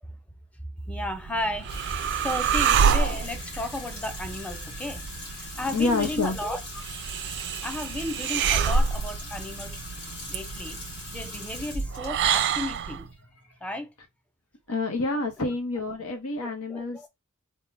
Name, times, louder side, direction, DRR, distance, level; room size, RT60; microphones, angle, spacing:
voice 1, 0.9-6.6 7.6-9.8 10.3-10.8 11.1-13.1 13.6-13.9 16.4-17.1, left 1 dB, 5° left, 0.5 m, -34 dB
sound 1, 1.0-13.1, right 6 dB, 55° right, 0.4 m, -28 dB
Water tap faucet / Sink (filling or washing), 1.6-14.0, left 1 dB, 60° left, 2.2 m, -40 dB
voice 2, 5.6-6.4 14.7-17.1, left 3 dB, 80° left, 0.9 m, -28 dB
3.6 x 2.2 x 4.3 m
head